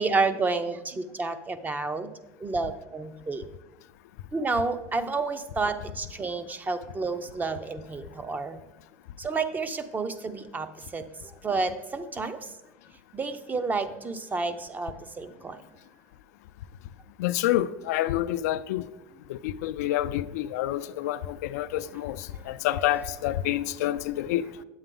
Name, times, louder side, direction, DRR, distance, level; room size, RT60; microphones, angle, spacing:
voice 1, 0.0-2.1 2.4-3.4 4.3-8.6 9.2-12.5 13.1-15.6 22.3-22.4, right 3 dB, 20° right, 0.6 m, -30 dB
voice 2, 17.2-18.8 19.3-21.2 21.5-22.2 22.5-24.4, left 13 dB, 85° left, 0.4 m, -27 dB
9.0 x 7.9 x 3.8 m
supercardioid pair, 105°, 8 cm